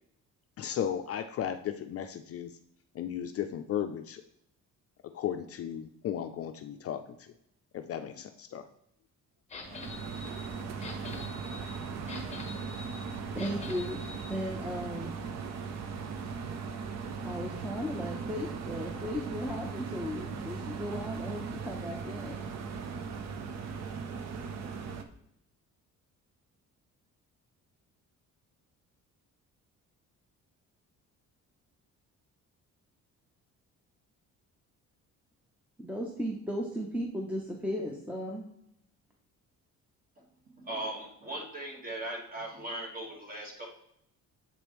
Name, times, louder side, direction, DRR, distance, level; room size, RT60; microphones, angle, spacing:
voice 1, 0.6-2.6 2.9-4.2 5.0-7.3 7.7-8.7, left 9 dB, 50° left, 8 dB, 0.4 m, -35 dB
sound 1, 9.5-14.3, left 4 dB, 20° left, 0.9 m, -46 dB
sound 2, 9.6-25.0, right 5 dB, 55° right, 0.7 m, -38 dB
voice 2, 13.3-14.0 14.3-15.1 17.2-22.4 35.8-38.4, equal, 5° right, -1 dB, 0.7 m, -36 dB
voice 3, 40.6-43.7, right 1 dB, 25° right, 0 dB, 1.6 m, -39 dB
7.4 x 5.1 x 3.1 m, 0.76 s
cardioid pair, 150°, 32 cm